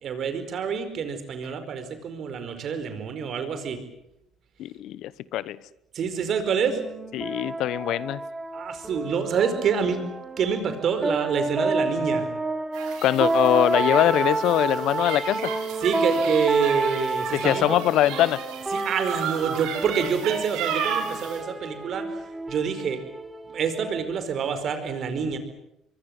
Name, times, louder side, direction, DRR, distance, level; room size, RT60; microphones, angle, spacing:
voice 1, 0.0-3.8 5.9-6.8 8.5-10.0 10.4-12.3 15.8-17.8 18.7-22.2 22.5-23.0 23.5-25.4, right 6 dB, 55° right, 4.9 m, -27 dB
voice 2, 4.6-5.6 7.1-8.2 13.0-15.5 17.3-18.4, left 13 dB, 65° left, 0.9 m, -23 dB
sound 1, 6.7-24.1, right 2 dB, 20° right, 3.4 m, -30 dB
sound 2, 12.7-21.4, right 8 dB, 75° right, 5.4 m, -34 dB
24.5 x 23.5 x 7.9 m
hypercardioid pair, 65°, 0 cm